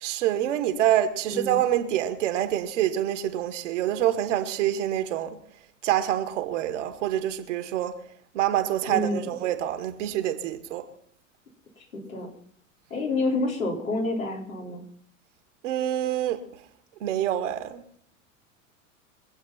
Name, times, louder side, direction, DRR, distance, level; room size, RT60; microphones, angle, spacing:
voice 1, 0.0-5.4 5.8-8.0 8.3-10.8 15.6-16.4 17.0-17.8, right 12 dB, 65° right, 2.1 m, -26 dB
voice 2, 8.9-9.3 11.8-12.3 12.9-14.8, left 2 dB, 85° left, 4.6 m, -28 dB
24.5 x 8.5 x 5.9 m
figure-of-eight pair, 85°, 40 cm